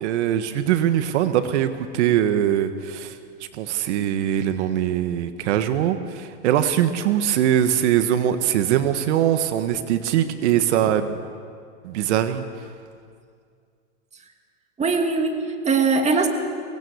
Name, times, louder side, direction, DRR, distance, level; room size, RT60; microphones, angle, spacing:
voice 1, 0.0-3.2 3.5-11.2 11.8-12.4, right 10 dB, 75° right, 9 dB, 1.5 m, -22 dB
voice 2, 14.8-16.3, right 4 dB, 20° right, 4 dB, 2.5 m, -21 dB
24.0 x 18.5 x 8.2 m, 2.2 s
supercardioid pair, 125°, 35 cm